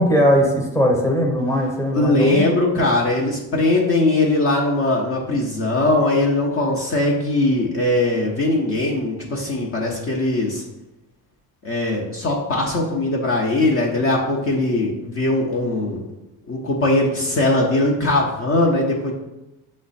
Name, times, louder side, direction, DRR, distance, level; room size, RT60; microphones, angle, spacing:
voice 1, 0.0-2.4, equal, 10° left, 0 dB, 1.0 m, -19 dB
voice 2, 1.9-10.6 11.6-16.0 16.5-19.1, left 2 dB, 40° left, -2 dB, 0.8 m, -20 dB
5.8 x 2.1 x 4.1 m, 0.96 s
cardioid pair, 90°, 36 cm